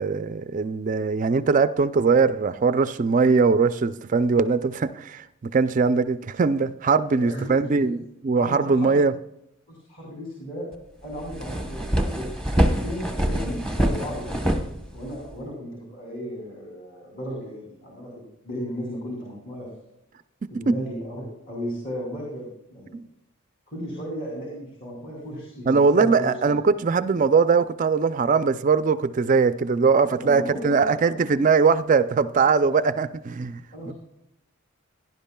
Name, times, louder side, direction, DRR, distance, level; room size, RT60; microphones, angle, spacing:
voice 1, 0.0-9.1 20.5-20.8 22.9-23.0 25.7-33.6 33.9-34.0, right 4 dB, 40° right, 0.4 m, -21 dB
voice 2, 7.1-7.9 8.4-9.0 9.7-10.7 11.0-11.8 12.1-12.3 12.5-19.7 20.5-22.9 23.7-26.5 30.0-31.3 33.7-33.9, equal, 40° left, 2.9 m, -35 dB
sound 1, 10.7-10.8 11.1-15.4, equal, 5° left, 1.0 m, -25 dB
17.0 x 10.5 x 2.3 m
head